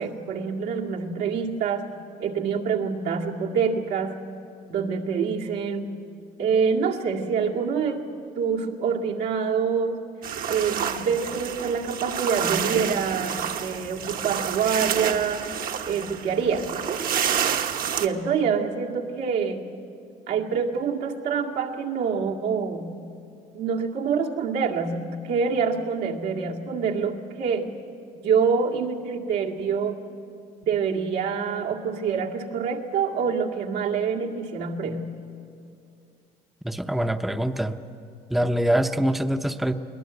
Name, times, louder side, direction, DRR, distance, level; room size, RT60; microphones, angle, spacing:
voice 1, 0.0-1.9 2.2-4.2 4.7-5.9 6.4-8.0 8.4-10.0 10.5-15.5 15.9-16.7 18.0-19.6 20.3-23.0 23.5-27.7 28.1-30.0 30.6-35.1, right 6 dB, 85° right, -1 dB, 2.1 m, -26 dB
sound 1, 10.2-18.1, right 8 dB, 60° right, 1.1 m, -29 dB
voice 2, 36.6-37.8 38.3-39.7, right 1 dB, ahead, 7 dB, 0.7 m, -24 dB
21.5 x 19.5 x 8.0 m, 2.5 s
cardioid pair, 110°, 17 cm